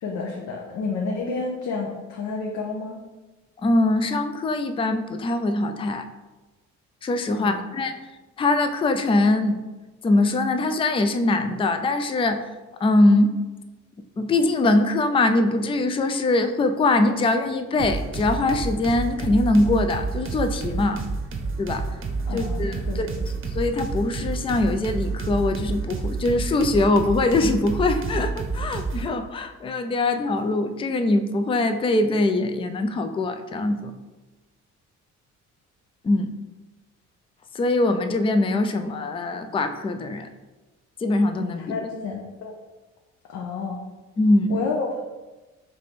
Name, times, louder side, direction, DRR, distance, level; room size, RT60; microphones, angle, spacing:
voice 1, 0.0-3.0 7.3-7.6 22.3-23.3 41.6-42.5 43.3-43.8 44.5-45.0, left 4 dB, 75° left, -1 dB, 0.7 m, -30 dB
voice 2, 3.6-6.1 7.0-7.9 8.4-9.6 10.0-12.4 12.8-13.4 14.2-21.0 21.6-21.9 22.3-23.1 23.5-33.9 36.0-36.3 37.5-40.3 41.0-41.6 44.2-44.6, left 2 dB, 20° left, 8 dB, 0.3 m, -22 dB
sound 1, 17.8-29.1, right 4 dB, 45° right, 0.7 m, -29 dB
3.3 x 3.3 x 4.1 m, 1.2 s
cardioid pair, 90°, 30 cm